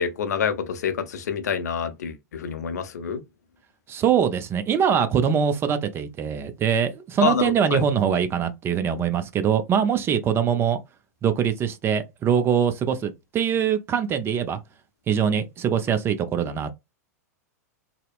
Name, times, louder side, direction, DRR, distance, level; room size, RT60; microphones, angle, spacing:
voice 1, 0.0-3.2 7.2-7.8, left 6 dB, 75° left, 0.6 m, -27 dB
voice 2, 3.9-10.8 11.2-14.6 15.1-16.7, right 8 dB, 25° right, 0.5 m, -23 dB
2.7 x 2.0 x 2.3 m
hypercardioid pair, 105°, 9 cm